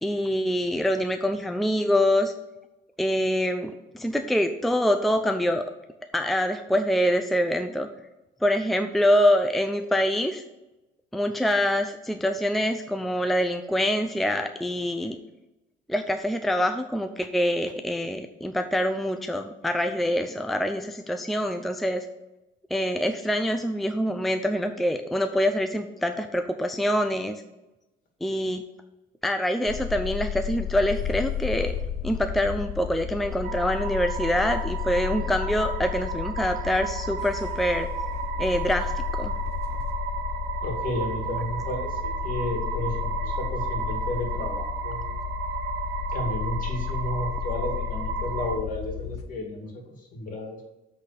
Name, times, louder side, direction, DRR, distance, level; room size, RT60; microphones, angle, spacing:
voice 1, 0.0-2.3 3.0-5.6 6.1-7.9 8.4-10.4 11.1-15.2 15.9-22.1 22.7-27.4 28.2-28.6 29.2-31.7 32.0-37.9 38.4-39.3, equal, ahead, 6 dB, 0.5 m, -25 dB
sound 1, 29.7-49.2, left 9 dB, 90° left, 1.0 m, -32 dB
sound 2, 33.4-48.6, right 7 dB, 80° right, 0.9 m, -34 dB
voice 2, 40.6-45.0 46.1-49.8 50.1-50.6, left 1 dB, 55° left, 1 dB, 2.3 m, -32 dB
7.9 x 4.2 x 6.8 m, 0.98 s
cardioid pair, 110°, 17 cm